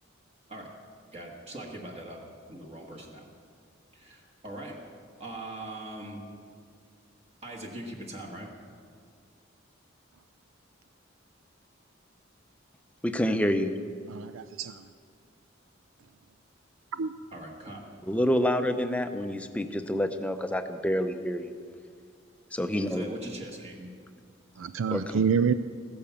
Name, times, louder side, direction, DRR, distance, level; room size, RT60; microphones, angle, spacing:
voice 1, 1.1-2.2 2.5-3.3 3.9-4.8 5.2-6.2 7.4-8.5 13.9-14.0 17.3-18.0 22.9-23.9, right 1 dB, 30° right, -1 dB, 1.6 m, -41 dB
voice 2, 13.0-13.7 18.1-21.5 22.5-23.0 24.9-25.2, equal, 5° left, 8 dB, 0.7 m, -27 dB
voice 3, 14.1-14.9 17.0-17.1 24.6-25.5, right 6 dB, 80° right, 12 dB, 0.4 m, -27 dB
15.0 x 10.0 x 7.1 m, 2.1 s
head